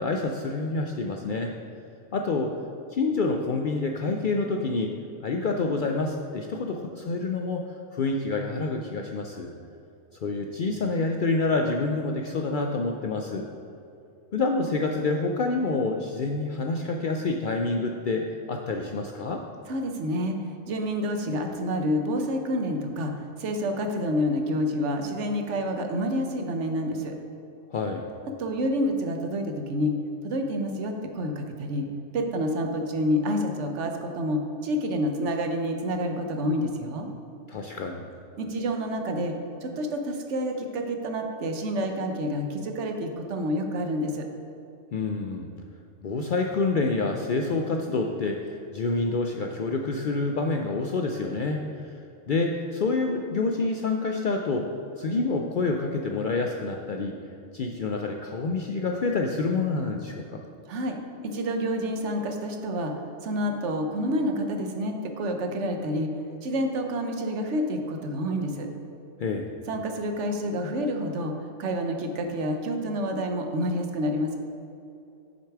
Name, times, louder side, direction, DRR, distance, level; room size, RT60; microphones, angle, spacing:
voice 1, 0.0-1.5 2.1-2.5 2.9-4.9 5.2-7.6 7.9-9.5 10.2-13.5 14.3-19.4 27.7-28.0 37.5-38.0 44.9-45.5 46.0-51.9 52.3-54.7 55.0-57.2 57.5-60.4 69.2-69.5, left 3 dB, 60° left, 2 dB, 0.5 m, -27 dB
voice 2, 19.7-27.2 28.4-29.9 30.2-31.9 32.1-37.1 38.4-44.3 60.7-62.9 63.2-66.1 66.4-68.7 69.7-71.3 71.6-74.4, equal, 70° right, 4 dB, 1.1 m, -28 dB
6.8 x 6.6 x 4.6 m, 2.7 s
omnidirectional pair, 1.3 m